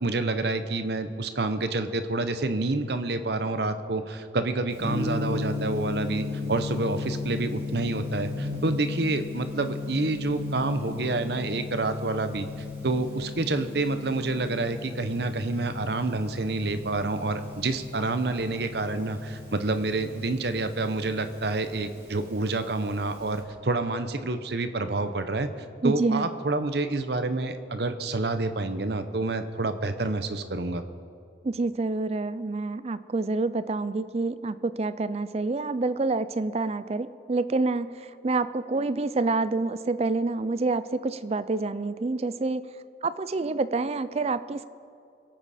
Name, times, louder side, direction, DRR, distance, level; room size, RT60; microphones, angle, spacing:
voice 1, 0.0-12.5 12.8-25.5 25.8-30.8, right 2 dB, 60° right, 9 dB, 0.8 m, -28 dB
Gong, 4.7-23.4, left 3 dB, 15° right, 2.9 m, -36 dB
voice 2, 25.8-26.3 31.4-42.6 43.0-44.6, right 3 dB, 35° right, 15 dB, 0.4 m, -27 dB
23.5 x 9.0 x 4.3 m, 2.5 s
head